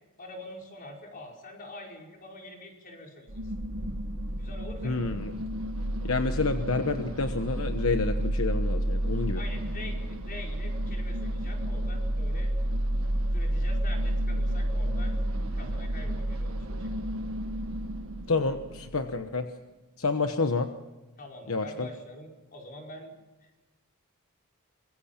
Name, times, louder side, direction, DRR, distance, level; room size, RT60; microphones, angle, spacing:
voice 1, 0.2-3.4 4.4-5.1 9.3-12.5 13.3-15.2 15.5-16.9 21.2-23.1 23.4-23.5, left 1 dB, 40° left, 0 dB, 5.1 m, -45 dB
sound 1, 3.3-19.2, right 1 dB, 70° right, 1.8 m, -30 dB
voice 2, 4.8-5.3 6.0-9.4 18.3-19.5 20.0-20.7 21.5-21.9, left 3 dB, 70° left, 7 dB, 1.1 m, -28 dB
24.5 x 22.0 x 5.9 m, 1.1 s
head